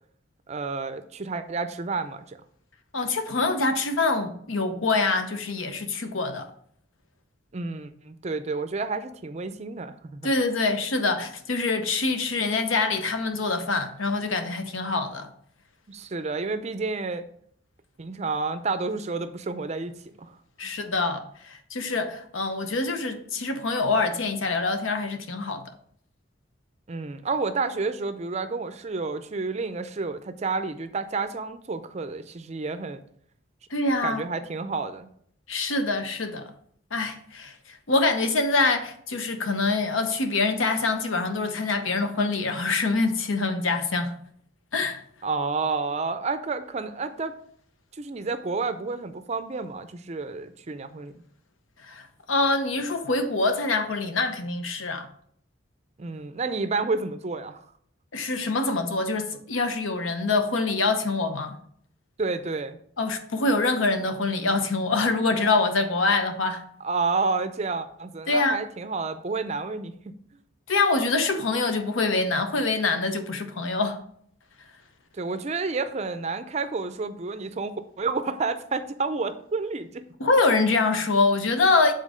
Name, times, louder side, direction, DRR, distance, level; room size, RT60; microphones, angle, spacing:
voice 1, 0.5-2.4 7.5-10.3 15.9-17.2 18.0-20.3 26.9-33.0 34.0-35.1 45.2-47.3 47.9-51.1 56.0-57.6 62.2-62.8 66.8-69.9 75.1-80.0, right 4 dB, 35° right, 0.4 m, -30 dB
voice 2, 2.9-6.5 10.2-15.3 20.6-25.6 33.7-34.2 35.5-36.5 36.9-44.1 44.7-45.0 51.8-55.1 58.1-61.6 63.0-66.6 68.3-68.6 70.7-74.0 80.2-81.9, left 3 dB, 80° left, 0.8 m, -25 dB
7.5 x 3.9 x 5.0 m
head